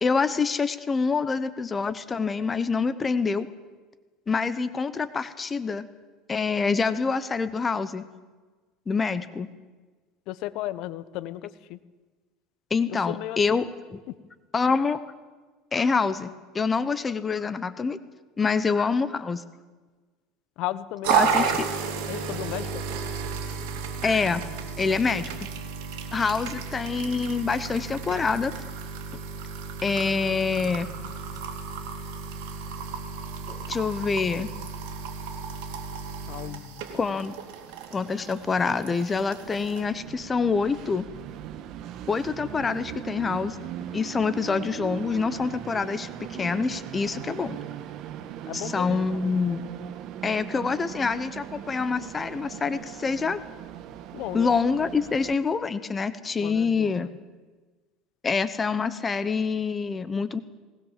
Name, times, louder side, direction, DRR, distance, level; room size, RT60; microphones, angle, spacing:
voice 1, 0.0-3.5 4.3-5.8 6.3-8.0 8.9-9.5 12.7-14.0 14.5-15.0 15.7-18.0 18.4-19.4 21.1-21.7 24.0-24.4 24.8-25.3 26.1-28.5 29.8-30.9 33.5-34.5 36.9-37.3 37.9-41.1 42.1-43.6 43.9-47.6 48.5-49.6 50.2-53.4 54.3-57.1 58.2-60.4, left 5 dB, 20° left, 13 dB, 1.0 m, -26 dB
voice 2, 10.3-11.8 12.9-13.6 14.1-14.2 20.6-21.5 22.1-22.8 36.3-36.8 48.5-49.0 54.1-54.5 56.4-57.1, left 15 dB, 60° left, 15 dB, 1.0 m, -35 dB
sound 1, 21.0-39.8, right 6 dB, 75° right, 3.5 m, -33 dB
Train, 36.9-55.3, right 10 dB, 50° right, 1.4 m, -40 dB
19.5 x 19.0 x 7.5 m, 1.3 s
supercardioid pair, 130°, 0 cm